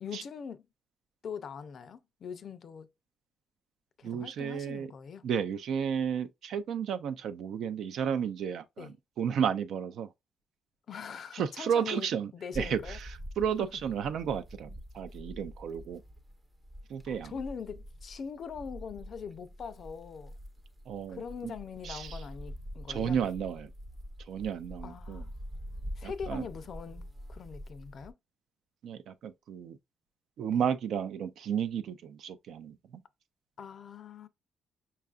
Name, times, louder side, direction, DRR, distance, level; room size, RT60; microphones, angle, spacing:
voice 1, 0.0-0.6 1.2-2.9 4.0-5.3 8.8-8.9 10.9-13.0 17.1-20.3 21.1-23.2 24.8-25.3 26.0-28.1 30.5-30.6 33.6-34.3, left 6 dB, 55° left, 0.4 m, -42 dB
voice 2, 4.0-4.9 5.2-10.1 11.3-16.0 16.9-17.3 20.9-21.5 21.8-22.2 22.9-23.7 24.3-25.2 26.0-26.5 28.8-29.8 30.4-33.0, right 8 dB, 70° right, 0.4 m, -33 dB
sound 1, 12.5-28.1, equal, 20° right, 0.6 m, -45 dB
5.6 x 2.4 x 2.4 m
cardioid pair, 90°, 0 cm